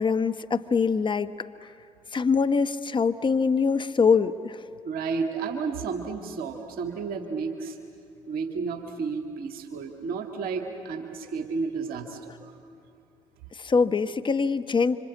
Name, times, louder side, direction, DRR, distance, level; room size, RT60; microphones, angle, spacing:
voice 1, 0.0-1.5 2.1-4.6 13.5-15.0, left 5 dB, 30° left, 10 dB, 1.1 m, -24 dB
voice 2, 4.8-7.8 8.3-12.5, right 5 dB, 70° right, 4 dB, 2.0 m, -32 dB
26.0 x 25.5 x 8.4 m, 2.6 s
hypercardioid pair, 50°, 16 cm